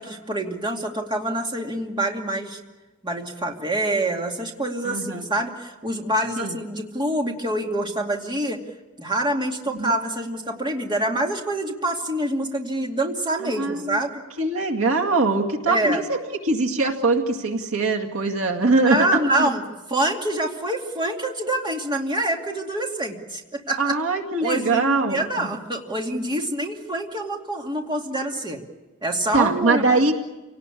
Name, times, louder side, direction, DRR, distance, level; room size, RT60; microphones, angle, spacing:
voice 1, 0.0-2.6 3.0-8.6 9.0-14.2 15.7-16.0 18.8-19.6 19.9-23.9 24.4-28.6 29.0-30.0, right 1 dB, 20° right, 1 dB, 2.5 m, -26 dB
voice 2, 4.8-5.3 6.4-6.6 9.8-9.9 13.6-14.0 14.4-16.2 16.5-19.1 19.4-19.5 23.8-25.5 29.3-30.1, right 3 dB, 70° right, 3 dB, 2.3 m, -22 dB
29.0 x 18.5 x 8.5 m, 1.1 s
head